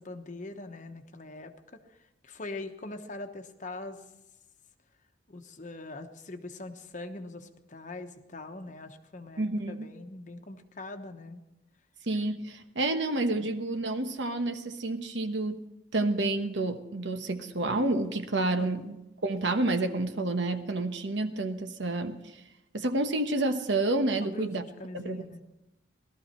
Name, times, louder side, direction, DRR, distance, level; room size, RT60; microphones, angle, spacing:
voice 1, 0.0-1.8 2.2-4.0 5.3-11.4 18.6-18.8 24.2-25.4, left 2 dB, 40° left, 7 dB, 1.0 m, -42 dB
voice 2, 9.4-9.9 12.1-15.6 15.9-19.0 19.2-22.3 22.7-24.6 24.9-25.2, right 2 dB, 70° right, 8 dB, 1.1 m, -29 dB
18.0 x 13.0 x 4.4 m, 0.93 s
head